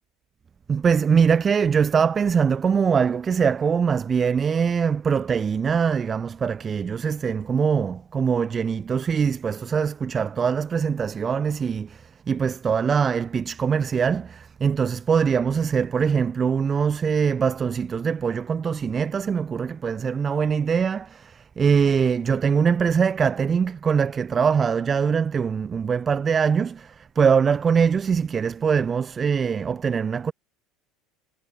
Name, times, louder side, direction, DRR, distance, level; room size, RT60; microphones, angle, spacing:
voice 1, 0.7-30.3, right 6 dB, 30° right, 0.8 m, -22 dB
figure-of-eight pair, 70°, 0 cm